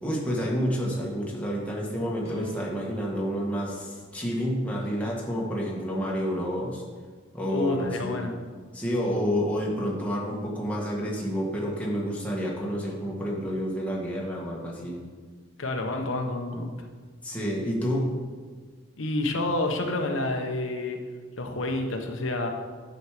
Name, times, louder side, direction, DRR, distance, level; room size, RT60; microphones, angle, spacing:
voice 1, 0.0-6.8 7.3-8.2 8.7-15.0 17.2-18.1, equal, 5° left, -4 dB, 1.7 m, -29 dB
sound 1, 2.2-5.5, right 3 dB, 30° left, 1.7 m, -47 dB
voice 2, 7.5-8.5 15.6-16.7 19.0-21.0 21.4-22.5, left 2 dB, 80° left, 3 dB, 1.0 m, -29 dB
9.5 x 6.3 x 4.9 m, 1.5 s
head